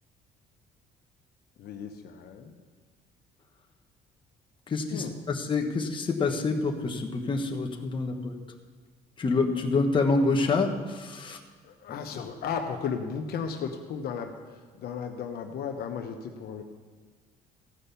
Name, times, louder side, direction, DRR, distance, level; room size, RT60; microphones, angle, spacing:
voice 1, 1.6-2.5 4.9-5.1 11.3-11.4 11.6-16.6, left 6 dB, 65° left, 4 dB, 1.0 m, -35 dB
voice 2, 4.7-8.3 9.2-11.4, left 3 dB, 30° left, 1 dB, 1.3 m, -27 dB
15.5 x 5.6 x 6.9 m, 1.5 s
cardioid pair, 110°, 17 cm